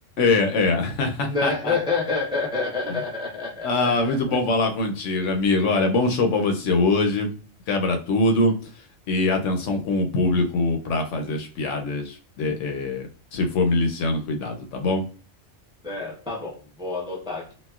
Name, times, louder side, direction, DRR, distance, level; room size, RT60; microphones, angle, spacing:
voice 1, 0.2-1.7 2.9-3.0 3.6-7.3 7.7-8.7 9.1-15.1, left 3 dB, 80° left, 4 dB, 0.9 m, -23 dB
voice 2, 1.2-4.4 15.8-17.5, left 4 dB, 5° right, -3 dB, 0.5 m, -28 dB
4.0 x 2.0 x 2.3 m, 0.37 s
omnidirectional pair, 1.3 m